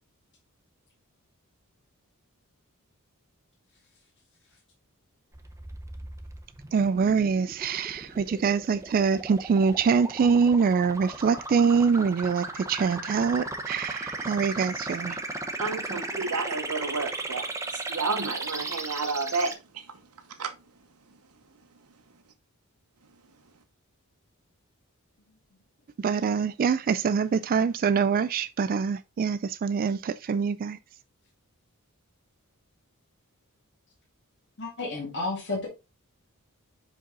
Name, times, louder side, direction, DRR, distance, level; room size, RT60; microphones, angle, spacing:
sound 1, 5.3-19.5, right 2 dB, 15° right, 0.8 m, -36 dB
voice 1, 6.7-15.2 26.0-30.8, right 6 dB, 40° right, 0.3 m, -24 dB
voice 2, 15.6-20.0 20.3-20.5, right 4 dB, 90° right, 1.0 m, -31 dB
voice 3, 34.6-35.7, left 3 dB, 55° left, 1.9 m, -31 dB
5.4 x 5.1 x 3.8 m
head